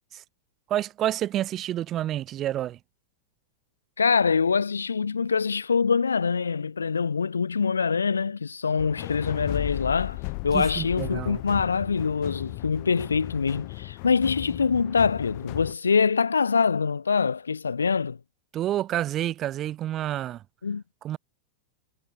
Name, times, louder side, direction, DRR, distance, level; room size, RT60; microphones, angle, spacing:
voice 1, 0.7-2.8 10.5-11.4 18.5-20.4 21.0-21.2, right 12 dB, 30° right, 3.4 m, -29 dB
voice 2, 4.0-18.2 20.6-20.8, left 5 dB, 75° left, 1.3 m, -24 dB
sound 1, 8.8-15.7, left 40 dB or more, 45° left, 2.1 m, -35 dB
figure-of-eight pair, 90°, 0 cm